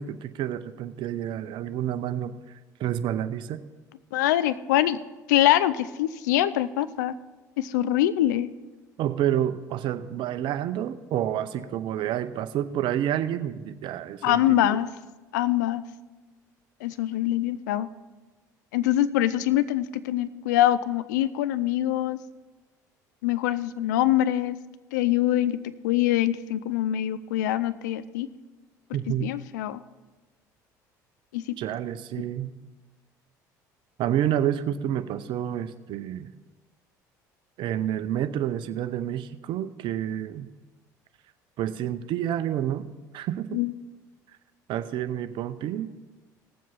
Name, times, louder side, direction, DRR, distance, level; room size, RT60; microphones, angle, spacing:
voice 1, 0.0-3.6 9.0-14.8 28.9-29.3 31.6-32.6 34.0-36.3 37.6-40.5 41.6-42.9 43.1-43.6 44.7-45.9, right 11 dB, 60° right, 11 dB, 0.7 m, -29 dB
voice 2, 4.1-5.0 5.3-7.1 7.6-8.5 14.2-14.9 15.3-15.8 16.8-17.9 18.7-22.2 23.2-24.6 24.9-25.5 25.8-28.3 29.2-29.8 31.3-31.4 43.5-43.7, left 13 dB, 80° left, 15 dB, 0.5 m, -24 dB
18.0 x 7.5 x 4.2 m, 1.2 s
hypercardioid pair, 65°, 9 cm